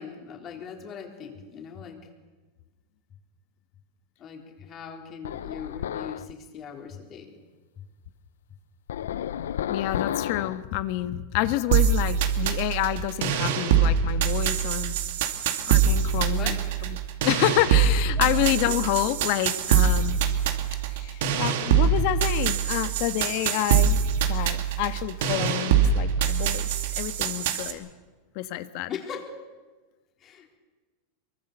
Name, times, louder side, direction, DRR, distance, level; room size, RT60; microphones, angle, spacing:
voice 1, 0.0-2.0 4.2-7.3 16.3-16.6 18.2-18.7 22.0-22.1 28.9-29.3 30.2-30.6, left 7 dB, 35° left, 2 dB, 4.0 m, -39 dB
sound 1, 5.2-6.3 8.9-10.6, left 10 dB, 90° left, 0.7 m, -31 dB
voice 2, 9.7-15.0 15.7-16.6 17.2-20.2 20.9-24.0 24.2-26.7 27.0-27.9 28.3-28.9, left 14 dB, 60° left, 11 dB, 1.4 m, -28 dB
sound 2, 11.7-27.7, right 7 dB, 70° right, 2.3 m, -24 dB
23.5 x 22.5 x 6.8 m, 1.3 s
supercardioid pair, 125°, 0 cm